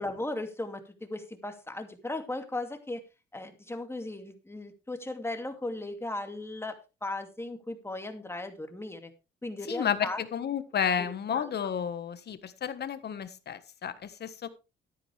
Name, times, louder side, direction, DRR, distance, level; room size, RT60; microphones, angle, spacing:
voice 1, 0.0-3.0 3.3-9.1 9.4-10.2 11.0-11.5, left 2 dB, 10° left, 6 dB, 2.5 m, -37 dB
voice 2, 9.7-14.5, left 8 dB, 55° left, 12 dB, 1.6 m, -32 dB
13.0 x 10.0 x 3.4 m, 0.28 s
cardioid pair, 90°, 20 cm